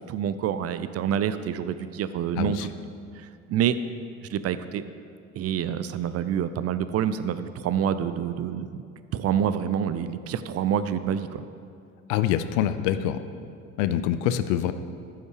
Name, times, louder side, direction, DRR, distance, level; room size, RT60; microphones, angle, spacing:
voice 1, 0.1-2.7 3.5-3.8 4.3-4.8 5.3-8.7 9.1-11.4, right 9 dB, 40° right, 13 dB, 0.5 m, -27 dB
voice 2, 2.4-2.7 12.1-13.2 13.8-14.7, left 11 dB, 65° left, 11 dB, 0.6 m, -25 dB
13.5 x 5.7 x 4.8 m, 2.5 s
figure-of-eight pair, 60°, 39 cm